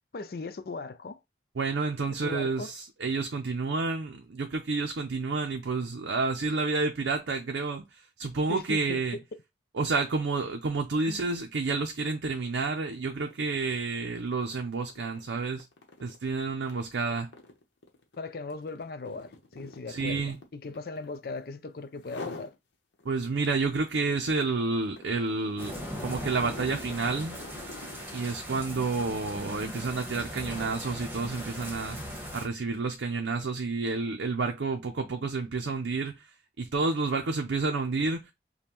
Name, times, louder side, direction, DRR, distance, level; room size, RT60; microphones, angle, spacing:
voice 1, 0.1-1.2 2.1-2.7 8.5-9.2 11.0-11.2 18.2-22.5, left 3 dB, 55° left, 0.4 m, -38 dB
voice 2, 1.6-9.2 9.7-15.7 16.0-17.3 19.9-20.4 23.0-25.7 26.0-27.4 28.1-36.3 36.6-38.2, right 3 dB, 80° right, 0.5 m, -30 dB
sound 1, 12.5-12.7 13.1-21.5 22.0-22.6 23.0-28.2, left 2 dB, 75° left, 0.9 m, -47 dB
sound 2, 25.6-32.5, equal, 10° right, 1.1 m, -39 dB
5.2 x 2.2 x 2.9 m
head